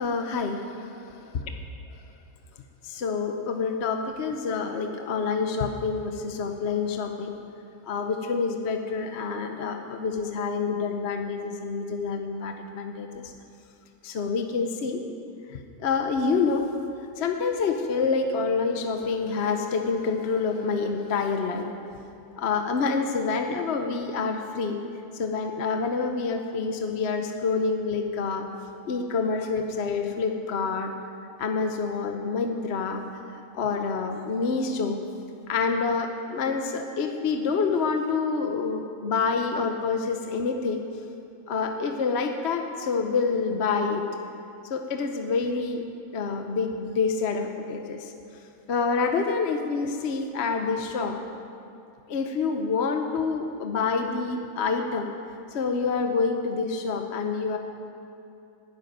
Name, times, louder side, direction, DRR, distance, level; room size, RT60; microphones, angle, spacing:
voice 1, 0.0-1.2 2.8-7.3 7.9-13.3 14.0-15.0 15.5-16.7 17.2-21.7 22.4-24.8 25.1-28.5 28.9-30.9 31.4-33.0 33.3-35.0 35.5-40.8 41.5-44.0 44.7-45.8 46.1-48.1 48.7-51.2 52.1-55.1 55.5-57.6, left 4 dB, 55° left, 5 dB, 1.0 m, -27 dB
12.5 x 11.0 x 9.1 m, 2.7 s
omnidirectional pair, 1.5 m